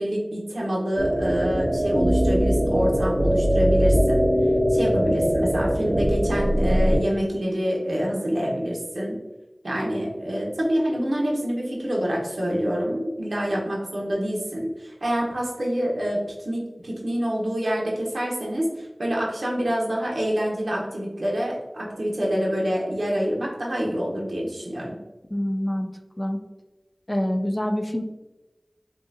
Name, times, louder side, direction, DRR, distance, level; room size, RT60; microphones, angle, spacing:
voice 1, 0.0-4.2 4.7-9.2 9.6-25.0, equal, 90° right, -3 dB, 1.0 m, -26 dB
sound 1, 1.0-7.0, equal, 40° right, 0.7 m, -21 dB
voice 2, 25.3-26.4 27.1-28.0, equal, 30° left, 4 dB, 0.5 m, -26 dB
5.4 x 2.5 x 2.7 m, 1.1 s
wide cardioid pair, 40°, 0 cm